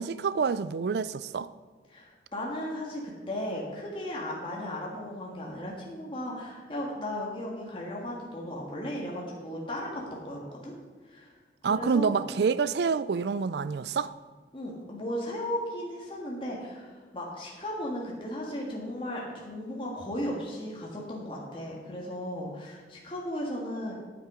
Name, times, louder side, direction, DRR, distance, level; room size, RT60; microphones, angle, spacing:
voice 1, 0.0-1.5 11.6-14.1, right 5 dB, 65° right, 0.4 m, -27 dB
voice 2, 1.9-10.7 11.1-11.3 11.7-12.2 14.5-23.9, left 1 dB, 30° left, 1.8 m, -36 dB
9.5 x 9.0 x 5.0 m
head